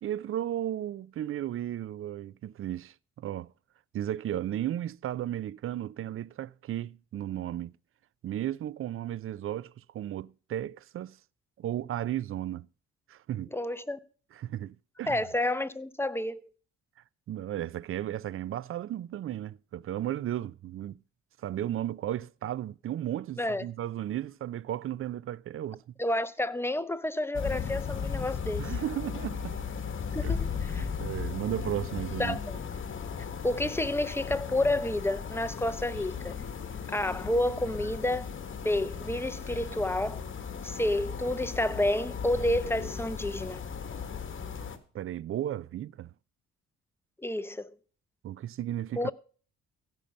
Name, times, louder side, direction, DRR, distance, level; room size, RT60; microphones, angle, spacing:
voice 1, 0.0-3.5 3.9-7.7 8.2-11.2 11.6-12.7 13.1-13.5 14.3-15.2 17.3-21.0 21.4-26.0 28.6-29.5 30.2-30.4 30.7-32.4 44.9-46.1 48.2-49.1, right 12 dB, 45° right, 0.4 m, -34 dB
voice 2, 13.5-14.0 15.1-16.4 23.4-23.6 26.0-28.7 30.1-30.9 32.2-32.6 33.4-36.4 36.9-38.3 38.6-40.2 40.6-43.6 47.2-47.7 49.0-49.1, left 1 dB, 10° left, 0.7 m, -30 dB
sound 1, 27.3-44.8, left 6 dB, 40° left, 1.5 m, -36 dB
15.5 x 5.5 x 5.2 m
cardioid pair, 90°, 30 cm